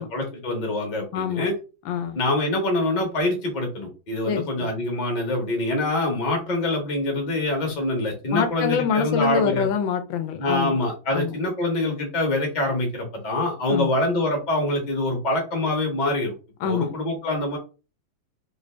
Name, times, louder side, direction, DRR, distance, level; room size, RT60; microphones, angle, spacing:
voice 1, 0.0-1.5 2.1-9.7 10.4-16.4 16.6-17.6, left 2 dB, 35° left, 1 dB, 0.8 m, -25 dB
voice 2, 1.1-1.5 1.8-2.2 4.3-4.7 8.3-10.8 11.1-11.4 13.7-13.9 16.6-16.9, left 7 dB, 85° left, 8 dB, 1.4 m, -25 dB
3.3 x 2.5 x 3.2 m, 0.33 s
omnidirectional pair, 2.1 m